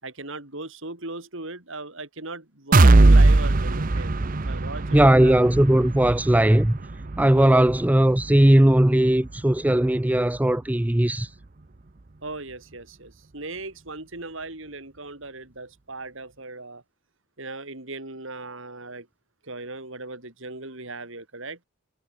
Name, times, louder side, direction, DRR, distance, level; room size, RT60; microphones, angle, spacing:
voice 1, 0.0-5.4 7.2-7.6 12.2-16.8 17.4-19.1 19.4-21.6, right 2 dB, 60° right, 3.8 m, -38 dB
sound 1, 2.7-10.5 10.9-11.0 11.4-11.5, right 2 dB, 40° right, 0.7 m, -21 dB
voice 2, 4.9-6.8 7.2-11.3, right 1 dB, 5° right, 0.4 m, -18 dB
head